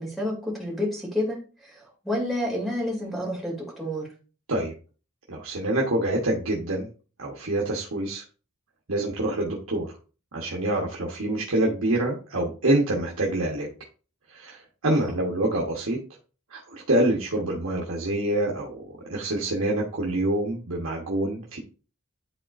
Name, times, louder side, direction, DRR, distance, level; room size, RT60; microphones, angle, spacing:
voice 1, 0.0-4.1 14.9-15.1, left 1 dB, ahead, -4 dB, 2.6 m, -30 dB
voice 2, 5.3-6.9 7.2-8.2 8.9-9.9 10.3-13.7 14.3-16.0 16.5-21.6, right 1 dB, 80° right, -2 dB, 1.2 m, -26 dB
10.5 x 4.0 x 2.5 m, 0.36 s
head